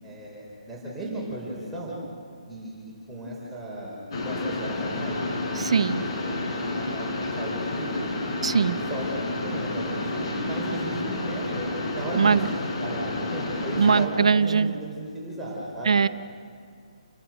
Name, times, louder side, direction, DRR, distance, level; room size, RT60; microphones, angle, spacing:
voice 1, 0.0-1.9 2.5-4.0 4.2-5.2 5.5-5.8 6.1-8.1 8.9-11.7 11.9-16.0, right 1 dB, 5° right, -7 dB, 5.0 m, -35 dB
Mechanisms, 4.1-14.1, left 2 dB, 45° left, 4.6 m, -30 dB
voice 2, 5.6-6.0 8.4-8.8 12.1-12.4 13.8-14.7 15.9-16.1, right 5 dB, 60° right, 15 dB, 0.6 m, -21 dB
29.0 x 18.5 x 7.9 m, 2.2 s
figure-of-eight pair, 140°, 4 cm